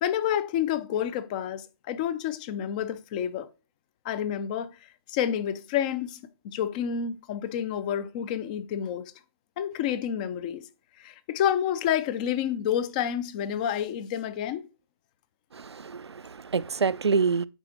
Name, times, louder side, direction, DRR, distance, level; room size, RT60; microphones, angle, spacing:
voice 1, 0.0-3.5 4.0-4.7 5.1-6.2 6.4-9.0 9.6-10.6 11.0-14.7, left 9 dB, 20° left, 0.3 m, -29 dB
voice 2, 15.5-17.5, right 5 dB, 85° right, 0.4 m, -27 dB
9.0 x 3.9 x 2.9 m
figure-of-eight pair, 140°, 13 cm